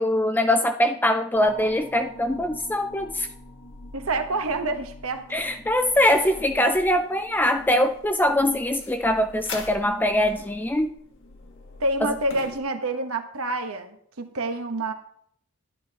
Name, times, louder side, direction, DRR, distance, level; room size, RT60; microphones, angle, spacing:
voice 1, 0.0-3.3 5.3-10.9 12.0-12.2, left 1 dB, 10° left, 7 dB, 0.4 m, -22 dB
sound 1, 1.3-12.6, left 2 dB, 60° left, 1.5 m, -43 dB
voice 2, 3.9-5.2 11.8-14.9, right 2 dB, 70° right, 7 dB, 1.1 m, -27 dB
11.5 x 10.5 x 2.9 m, 0.66 s
head